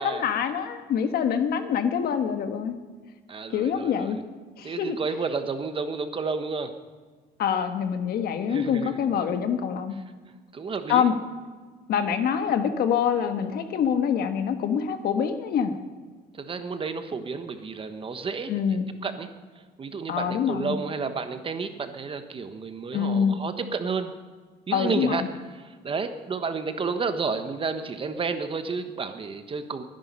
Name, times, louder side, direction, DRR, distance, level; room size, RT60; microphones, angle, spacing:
voice 1, 0.0-2.8 3.5-4.2 4.6-5.0 7.4-9.9 10.9-11.1 11.9-15.7 18.5-18.9 20.1-20.7 22.9-23.4 24.7-25.3, left 7 dB, 65° left, 8 dB, 1.5 m, -25 dB
voice 2, 3.3-4.2 4.6-6.7 8.5-9.0 10.5-11.1 16.3-18.6 19.0-19.3 19.8-24.1 24.7-25.2 25.5-29.8, right 4 dB, 30° right, 8 dB, 1.3 m, -31 dB
21.5 x 10.5 x 5.5 m, 1.4 s
cardioid pair, 120°, 17 cm